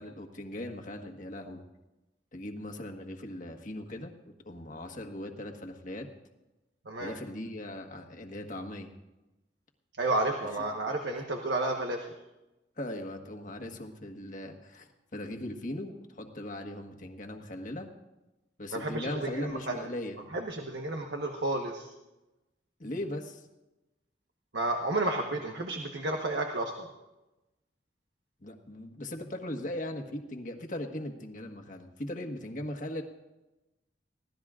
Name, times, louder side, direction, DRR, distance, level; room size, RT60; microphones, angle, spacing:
voice 1, 0.0-1.6 2.3-6.1 7.0-8.9 12.8-17.9 18.6-20.2 22.8-23.5 28.4-33.0, left 1 dB, 45° left, 2 dB, 1.4 m, -39 dB
voice 2, 10.0-12.1 18.7-19.9 20.3-21.9 24.5-26.9, right 2 dB, 80° right, 2 dB, 1.2 m, -31 dB
24.0 x 17.0 x 2.5 m, 1.0 s
head